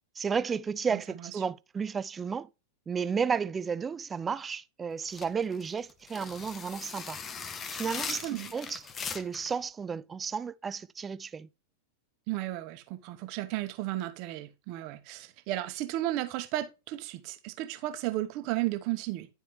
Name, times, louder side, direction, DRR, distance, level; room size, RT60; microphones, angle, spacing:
voice 1, 0.2-2.5 2.9-7.2 7.8-8.8 9.1-11.5, right 6 dB, 20° right, 0.4 m, -33 dB
sound 1, 5.0-9.5, left 6 dB, 25° left, 0.7 m, -39 dB
voice 2, 8.1-8.5 12.3-19.3, right 15 dB, 45° right, 1.0 m, -34 dB
11.0 x 4.6 x 3.0 m
figure-of-eight pair, 90°, 0 cm